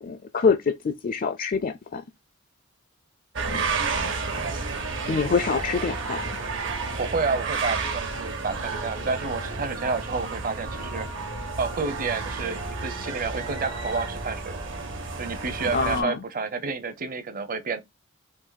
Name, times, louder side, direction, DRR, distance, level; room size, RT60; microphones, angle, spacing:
voice 1, 0.0-2.0 3.5-3.6 5.1-6.2 15.7-16.2, left 5 dB, 45° left, 0.4 m, -25 dB
sound 1, 3.4-16.0, right 4 dB, 65° right, 1.1 m, -31 dB
voice 2, 7.0-11.1 11.6-14.6 15.2-17.8, right 4 dB, 45° right, 0.8 m, -30 dB
4.6 x 2.9 x 4.0 m
head